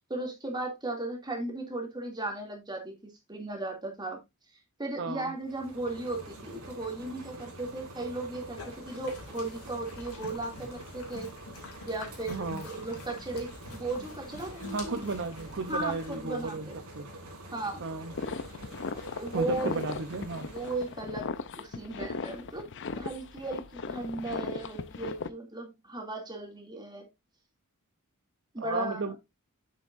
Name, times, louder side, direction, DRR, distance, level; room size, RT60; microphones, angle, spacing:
voice 1, 0.1-4.2 4.8-11.3 11.8-15.1 15.7-16.8 17.5-17.8 19.2-19.8 20.5-21.3 21.5-22.7 23.0-27.1 28.5-29.1, right 2 dB, 20° right, 2.6 m, -36 dB
voice 2, 5.0-5.3 12.3-12.7 14.7-16.7 17.0-17.1 17.8-18.1 19.3-20.5 28.6-29.2, right 4 dB, 55° right, 0.8 m, -34 dB
sound 1, 5.3-21.1, right 1 dB, 85° right, 4.1 m, -47 dB
sound 2, 8.4-16.2, left 3 dB, 75° left, 2.7 m, -47 dB
sound 3, 18.1-25.3, left 4 dB, 55° left, 0.7 m, -37 dB
8.6 x 7.5 x 2.6 m
head